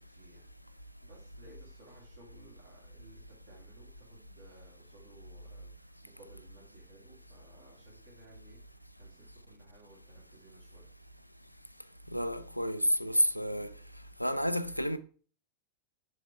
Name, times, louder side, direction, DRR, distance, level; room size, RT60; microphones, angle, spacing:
voice 1, 0.0-10.9, right 2 dB, 55° right, 2.4 m, -59 dB
voice 2, 12.1-13.7 14.2-15.0, equal, 90° left, 0.3 m, -30 dB
6.2 x 3.9 x 4.6 m
figure-of-eight pair, 90°, 0 cm